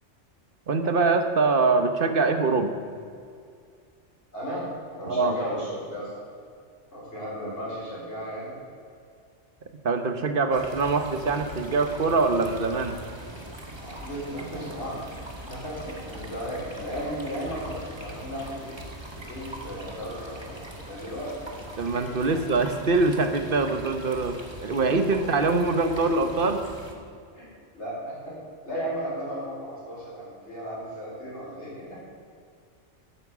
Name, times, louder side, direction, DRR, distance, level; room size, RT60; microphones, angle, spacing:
voice 1, 0.7-2.7 5.1-5.4 9.8-13.0 21.8-26.6, right 3 dB, 50° right, 8 dB, 1.2 m, -24 dB
voice 2, 4.3-4.7 4.9-6.1 6.9-8.5 13.8-15.1 15.5-18.8 19.2-21.6 22.3-22.4 27.3-27.5 27.7-32.0, equal, 70° left, -8 dB, 4.6 m, -35 dB
sound 1, 10.5-26.9, right 1 dB, 25° right, 1.3 m, -41 dB
11.0 x 8.9 x 7.2 m, 2.3 s
omnidirectional pair, 1.2 m